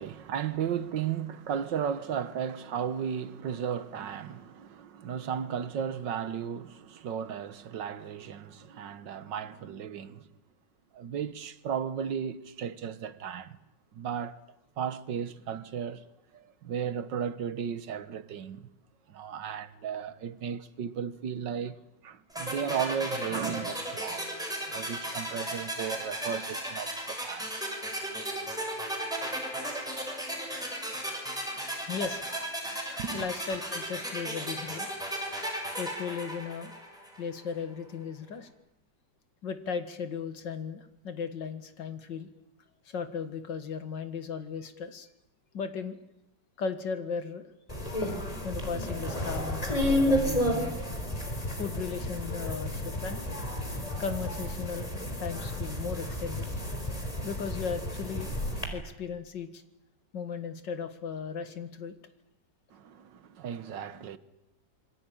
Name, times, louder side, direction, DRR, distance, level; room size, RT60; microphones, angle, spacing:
voice 1, 0.0-10.3 10.9-13.6 13.9-14.4 14.8-16.0 16.3-18.7 19.1-21.8 22.0-24.3 24.7-27.5 31.0-31.1 33.0-33.3 62.7-64.2, right 8 dB, 85° right, 1.9 m, -35 dB
sound 1, 22.4-37.3, right 1 dB, ahead, 6.7 m, -35 dB
voice 2, 31.9-32.2 32.9-34.9 35.8-36.7 37.2-38.5 39.4-42.3 42.9-45.1 45.5-46.0 46.6-47.4 48.4-50.8 51.5-53.2 54.0-54.9 55.2-56.5 57.2-58.4 58.7-59.6 60.1-61.9, left 6 dB, 80° left, 2.4 m, -36 dB
sound 2, 47.7-58.6, left 1 dB, 20° left, 4.2 m, -31 dB
27.0 x 22.0 x 9.1 m
omnidirectional pair, 1.9 m